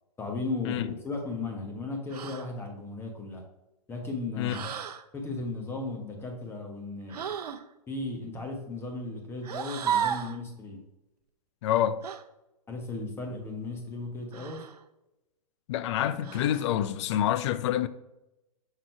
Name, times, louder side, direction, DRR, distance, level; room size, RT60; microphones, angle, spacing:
voice 1, 0.2-3.4 3.9-4.7 5.1-7.3 7.9-10.8 12.7-14.6, left 3 dB, 10° left, 1.4 m, -36 dB
sound 1, 2.1-2.5 4.5-5.0 7.1-7.6 9.4-10.4 12.0-12.2 14.3-14.8 16.2-16.7, right 8 dB, 80° right, 0.7 m, -33 dB
voice 2, 11.6-12.0 15.7-17.9, left 11 dB, 45° left, 0.4 m, -27 dB
6.4 x 3.7 x 4.6 m
hypercardioid pair, 135°, 20 cm